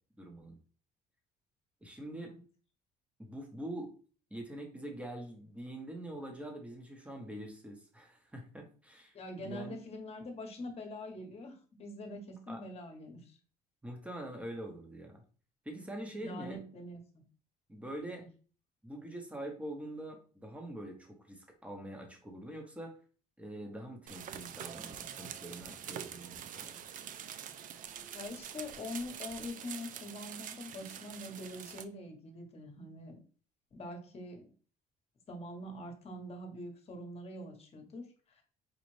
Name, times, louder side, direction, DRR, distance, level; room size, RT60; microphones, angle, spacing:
voice 1, 0.2-0.6 1.8-2.3 3.2-3.9 4.3-9.2 9.4-9.8 12.5-12.6 13.8-15.2 15.6-16.6 17.7-18.2 18.8-22.9 23.4-26.8, right 1 dB, 5° right, 3 dB, 1.0 m, -44 dB
voice 2, 9.1-13.4 16.2-17.2 18.1-18.3 28.1-33.2 33.7-34.5 35.3-38.4, left 1 dB, 40° left, 4 dB, 1.1 m, -44 dB
sound 1, 24.1-31.8, right 9 dB, 50° right, 0.4 m, -45 dB
5.3 x 2.4 x 3.1 m, 0.39 s
cardioid pair, 110°, 17 cm